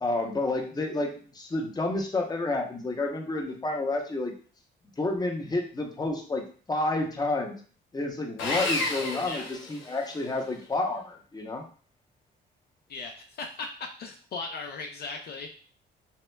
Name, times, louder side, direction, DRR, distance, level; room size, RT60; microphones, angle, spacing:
voice 1, 0.0-4.3 5.0-7.6 7.9-11.7, left 2 dB, 20° left, 2 dB, 0.7 m, -30 dB
Sawing, 8.4-10.3, left 2 dB, 85° left, 0.9 m, -31 dB
voice 2, 12.9-13.7 14.0-15.5, left 4 dB, 55° left, 3 dB, 0.5 m, -37 dB
5.6 x 2.2 x 2.2 m, 0.42 s
cardioid pair, 90°, 20 cm